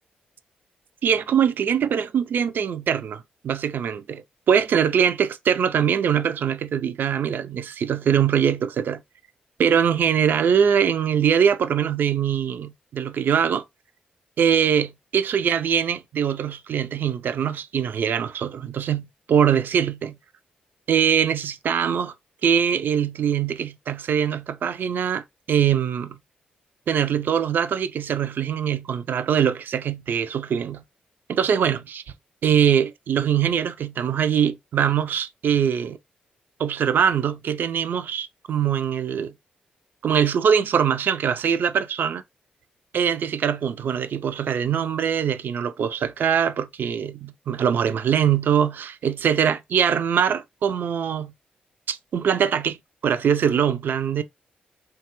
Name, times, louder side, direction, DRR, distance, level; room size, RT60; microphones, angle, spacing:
voice 1, 1.0-9.0 9.6-13.6 14.4-20.2 20.9-22.1 22.4-26.2 26.9-30.8 31.3-32.0 32.4-36.0 36.6-39.3 40.0-42.2 42.9-51.3 51.9-52.8 53.0-54.2, right 8 dB, 65° right, 0.3 m, -22 dB
3.2 x 2.3 x 2.9 m
supercardioid pair, 50°, 4 cm